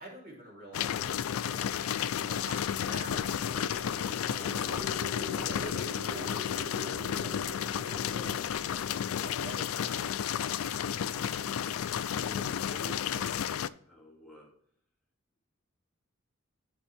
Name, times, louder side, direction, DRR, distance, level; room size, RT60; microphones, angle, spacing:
voice 1, 0.0-4.9 5.3-7.4 7.8-9.7 11.0-11.2 12.1-12.2, right 1 dB, 45° right, -3 dB, 3.2 m, -48 dB
sound 1, 0.7-13.7, left 9 dB, 85° left, 0.4 m, -32 dB
sound 2, 2.7-10.7, left 2 dB, 70° right, 3.4 m, -45 dB
voice 2, 12.2-13.4 13.8-14.5, equal, 5° left, -5 dB, 2.2 m, -51 dB
11.5 x 5.2 x 3.3 m, 0.62 s
head